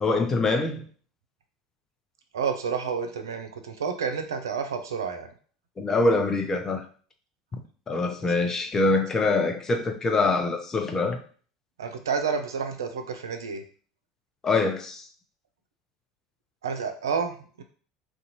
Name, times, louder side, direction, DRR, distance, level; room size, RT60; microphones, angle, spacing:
voice 1, 0.0-0.8 5.8-6.8 7.9-11.2 14.4-15.1, left 3 dB, 25° left, 4 dB, 0.6 m, -24 dB
voice 2, 2.3-5.3 8.2-8.3 11.8-13.6 16.6-17.6, right 6 dB, 80° right, 6 dB, 0.4 m, -30 dB
2.5 x 2.2 x 2.8 m, 0.43 s
hypercardioid pair, 75°, 2 cm